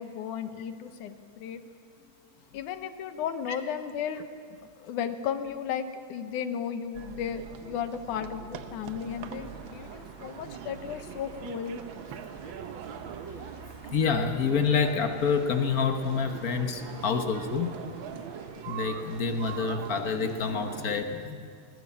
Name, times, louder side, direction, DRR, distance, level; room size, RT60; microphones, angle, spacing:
voice 1, 0.0-1.6 2.5-4.3 4.8-11.8, left 8 dB, 85° left, 9 dB, 2.7 m, -34 dB
sound 1, 6.9-21.0, right 8 dB, 85° right, 1.0 m, -42 dB
sound 2, 9.1-19.6, right 1 dB, 30° right, 4.9 m, -51 dB
voice 2, 13.9-17.7 18.7-21.4, left 5 dB, 65° left, 6 dB, 0.8 m, -27 dB
21.0 x 19.5 x 8.6 m, 2.3 s
omnidirectional pair, 3.4 m